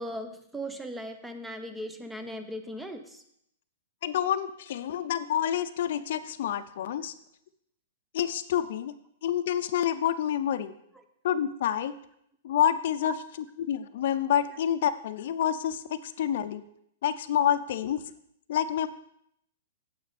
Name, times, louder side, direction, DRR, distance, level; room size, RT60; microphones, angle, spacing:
voice 1, 0.0-3.2 13.0-13.1, equal, 5° right, 8 dB, 0.8 m, -38 dB
voice 2, 4.0-7.1 8.1-8.9 9.2-10.7 11.2-11.9 12.4-13.1 13.6-16.6 17.0-18.0 18.5-18.9, left 10 dB, 60° left, 12 dB, 0.6 m, -28 dB
9.4 x 7.7 x 4.2 m, 0.73 s
hypercardioid pair, 155°, 0 cm